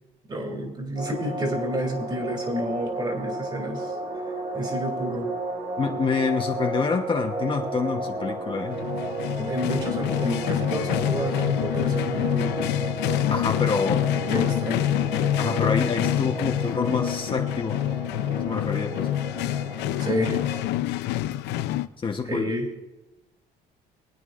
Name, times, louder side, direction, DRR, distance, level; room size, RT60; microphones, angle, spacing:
voice 1, 0.3-4.0 4.5-5.3 9.4-12.6 14.3-14.8 20.0-20.4 22.2-22.7, equal, 25° right, 3 dB, 2.9 m, -29 dB
sound 1, 1.0-20.6, right 3 dB, 50° right, 3.3 m, -33 dB
voice 2, 5.8-8.8 13.3-14.1 15.4-17.8 18.3-19.1 22.0-22.5, left 5 dB, 30° left, 2 dB, 1.1 m, -27 dB
sound 2, 8.7-21.9, left 13 dB, 90° left, 0.6 m, -26 dB
23.0 x 9.1 x 2.6 m, 1.1 s
cardioid pair, 110°, 17 cm